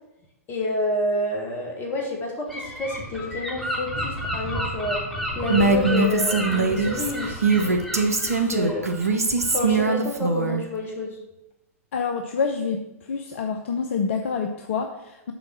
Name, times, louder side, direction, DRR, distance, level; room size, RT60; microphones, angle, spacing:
voice 1, 0.5-5.0 5.4-8.9 9.5-11.2, left 1 dB, 25° left, 0 dB, 2.2 m, -29 dB
Gull seagull / Wind, 2.5-9.8, equal, ahead, 2.3 m, -32 dB
Female speech woman speaking, 5.5-10.6, right 4 dB, 80° right, 0.9 m, -22 dB
voice 2, 11.9-12.8 13.1-15.3, left 5 dB, 55° left, 5 dB, 0.7 m, -27 dB
7.1 x 4.8 x 6.2 m, 0.93 s
figure-of-eight pair, 105°, 8 cm